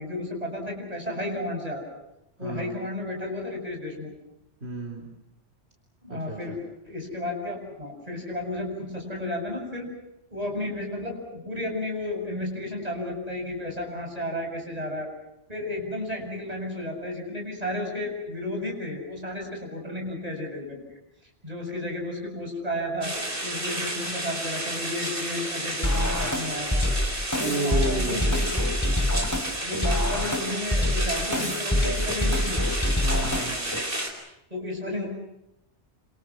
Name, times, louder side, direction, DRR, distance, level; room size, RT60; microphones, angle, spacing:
voice 1, 0.0-1.9 2.4-4.1 6.0-6.5 6.8-9.9 10.3-15.1 15.5-20.8 21.4-23.1 23.4-26.8 27.4-28.5 28.9-29.1 29.6-32.6 34.5-35.1, left 1 dB, 35° right, 1 dB, 7.5 m, -33 dB
voice 2, 2.4-2.8 4.6-5.1 6.1-6.6 27.4-28.4 33.0-33.6, right 2 dB, 65° right, 0 dB, 4.2 m, -31 dB
sound 1, 23.0-34.1, right 1 dB, 50° right, 4.9 m, -31 dB
sound 2, 25.8-33.8, left 1 dB, 15° left, 3.1 m, -26 dB
28.0 x 27.5 x 6.3 m, 0.85 s
omnidirectional pair, 1.2 m